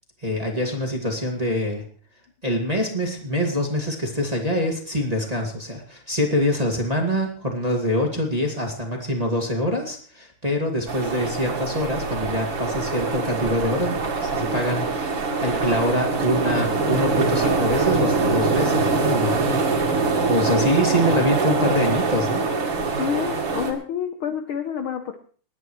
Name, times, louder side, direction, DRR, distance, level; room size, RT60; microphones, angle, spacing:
voice 1, 0.2-1.8 2.4-19.7 20.2-22.5, equal, 15° right, 1 dB, 1.7 m, -25 dB
sound 1, 10.9-23.7, right 4 dB, 50° right, 3.0 m, -23 dB
voice 2, 23.0-25.2, left 8 dB, 65° left, 7 dB, 1.4 m, -28 dB
29.5 x 9.9 x 3.1 m, 0.43 s
omnidirectional pair, 3.3 m